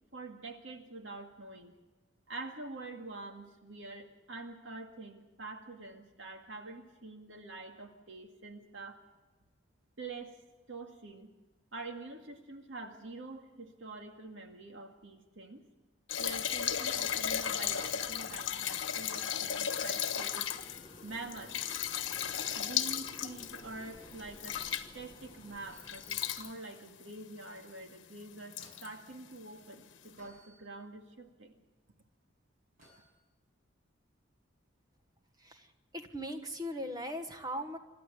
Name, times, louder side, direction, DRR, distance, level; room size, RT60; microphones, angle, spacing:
voice 1, 0.1-1.7 2.3-9.0 10.0-10.4 10.7-11.3 11.7-15.6 16.2-20.5 21.0-21.5 22.5-24.6 24.9-31.6, right 3 dB, 65° right, 4 dB, 2.1 m, -46 dB
sound 1, 16.1-25.3 25.8-26.5 27.4-27.5 27.8-27.9 28.5-28.9 29.9-30.0, left 9 dB, 65° left, 1.3 m, -35 dB
sound 2, 16.2-26.5, left 1 dB, 20° left, 1.6 m, -55 dB
sound 3, 20.1-21.1 23.7-23.9 25.7-26.6 28.1-29.0 30.2-30.6 32.8-33.2 34.9-35.1, equal, 40° right, 6.9 m, -61 dB
voice 2, 35.9-37.8, equal, 20° right, 6 dB, 1.5 m, -38 dB
26.5 x 13.0 x 8.4 m, 1.2 s
head